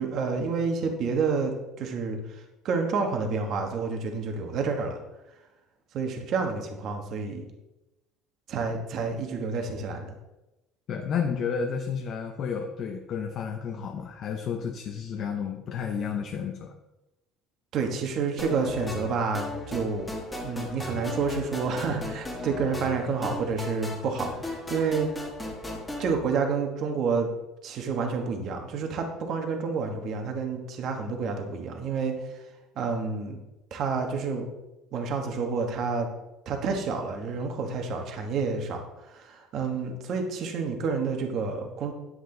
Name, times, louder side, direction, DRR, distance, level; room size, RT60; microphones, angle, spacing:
voice 1, 0.0-5.0 5.9-7.4 8.5-10.1 17.7-20.1 20.4-25.1 26.0-27.3 27.6-32.1 32.8-33.4 33.7-34.4 34.9-36.1 36.4-38.8 39.1-41.9, right 5 dB, 45° right, 4 dB, 1.4 m, -29 dB
voice 2, 10.9-16.7, left 6 dB, 40° left, 4 dB, 0.7 m, -31 dB
sound 1, 18.4-26.1, left 1 dB, 10° left, 1.3 m, -36 dB
9.9 x 7.8 x 3.9 m, 0.98 s
cardioid pair, 160°, 0 cm